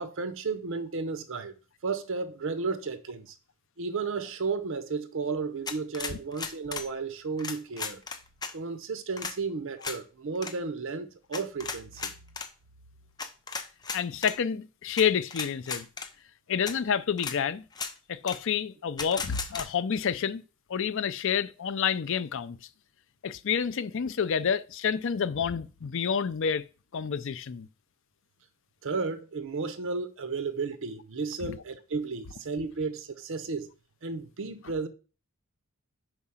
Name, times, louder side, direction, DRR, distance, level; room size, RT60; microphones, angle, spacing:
voice 1, 0.0-1.5 1.8-3.3 3.8-8.0 8.5-12.1 28.8-33.7 34.0-34.9, right 4 dB, 60° right, 0.6 m, -33 dB
sound 1, 5.7-6.9 7.4-8.5 9.2-9.4 9.8-10.0 10.4-10.5 11.3-12.5 13.2-14.4 15.0-15.1 15.3-16.1 16.7-16.8 17.2-17.4 17.7-17.9 18.3-18.4 19.0-19.7, left 5 dB, 20° left, 0.6 m, -35 dB
voice 2, 13.9-15.9 16.5-17.6 18.1-20.4 20.7-22.6 23.2-26.6 26.9-27.7, left 7 dB, 60° left, 0.5 m, -29 dB
4.9 x 4.7 x 5.6 m
head